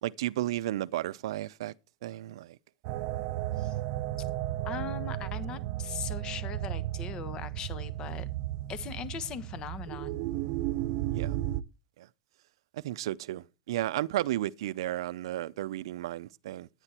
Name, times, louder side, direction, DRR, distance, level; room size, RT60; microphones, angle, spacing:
voice 1, 0.0-1.7 2.0-2.6 11.1-11.4 12.0-12.1 12.7-16.7, right 14 dB, 80° right, 0.6 m, -33 dB
sound 1, 2.8-11.6, right 14 dB, 55° right, 0.8 m, -34 dB
voice 2, 4.6-8.3 8.7-10.3, left 8 dB, 30° left, 1.2 m, -40 dB
9.9 x 9.8 x 4.3 m
supercardioid pair, 145°, 3 cm